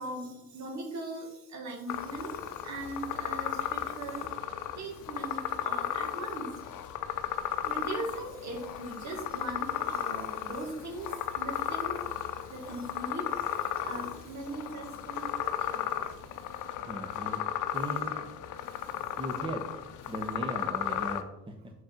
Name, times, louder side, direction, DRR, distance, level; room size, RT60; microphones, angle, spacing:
voice 1, 0.0-4.4 4.7-6.8 7.6-16.1 16.6-16.8 18.0-18.1 18.5-19.2, right 2 dB, 65° right, 2 dB, 1.6 m, -40 dB
sound 1, 1.9-21.2, left 10 dB, 80° left, 0.6 m, -35 dB
voice 2, 16.9-17.4 17.7-18.1 19.2-19.6 20.1-21.7, right 1 dB, 15° right, 4 dB, 0.9 m, -38 dB
5.0 x 3.9 x 5.8 m, 0.90 s
cardioid pair, 90°, 30 cm